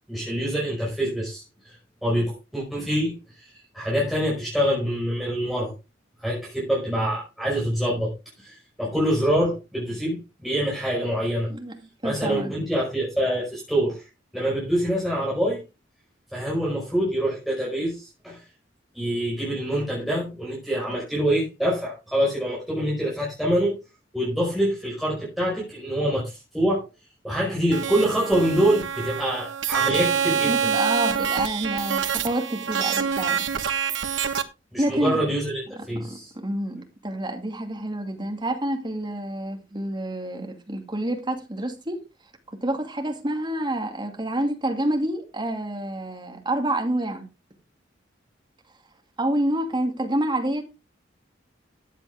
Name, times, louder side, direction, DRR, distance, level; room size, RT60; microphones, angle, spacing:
voice 1, 0.1-5.7 6.2-11.5 12.0-14.1 14.3-15.6 16.3-18.4 18.9-23.8 24.1-26.8 27.2-30.7 34.7-36.3, equal, ahead, 5.3 m, -25 dB
voice 2, 12.0-12.6 30.4-33.5 34.8-35.2 36.0-42.0 42.5-47.3 49.2-50.6, right 1 dB, 25° right, 2.5 m, -28 dB
sound 1, 27.7-34.4, right 7 dB, 70° right, 1.2 m, -26 dB
14.0 x 9.0 x 3.6 m
head